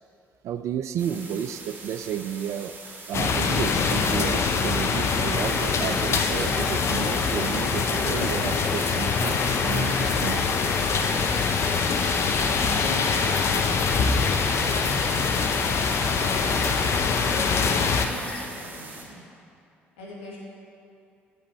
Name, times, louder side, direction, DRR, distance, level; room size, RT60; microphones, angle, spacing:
voice 1, 0.4-2.7 3.1-10.6, right 9 dB, 55° right, 11 dB, 0.4 m, -32 dB
sound 1, 1.0-19.0, right 3 dB, 35° right, 2.0 m, -43 dB
sound 2, 3.1-18.1, left 5 dB, 50° left, 0.6 m, -24 dB
sound 3, 5.3-18.5, left 1 dB, 20° left, 1.2 m, -37 dB
voice 2, 12.7-15.4 16.0-19.2 20.0-20.4, left 1 dB, 80° left, -6 dB, 1.9 m, -40 dB
8.4 x 7.5 x 4.4 m, 2.5 s
figure-of-eight pair, 50°, 6 cm